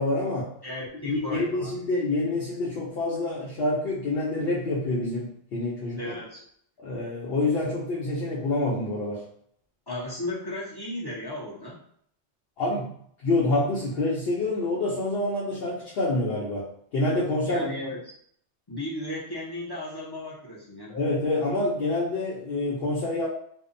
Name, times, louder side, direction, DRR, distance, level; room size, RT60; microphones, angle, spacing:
voice 1, 0.0-0.5 1.0-6.1 6.8-9.2 12.6-12.9 13.2-17.7 20.9-23.3, left 2 dB, 60° left, -6 dB, 0.8 m, -27 dB
voice 2, 0.6-1.7 6.0-6.4 9.9-11.8 17.4-18.1 18.7-21.0, left 1 dB, 35° left, -6 dB, 0.3 m, -35 dB
2.7 x 2.1 x 2.5 m, 0.66 s
omnidirectional pair, 1.2 m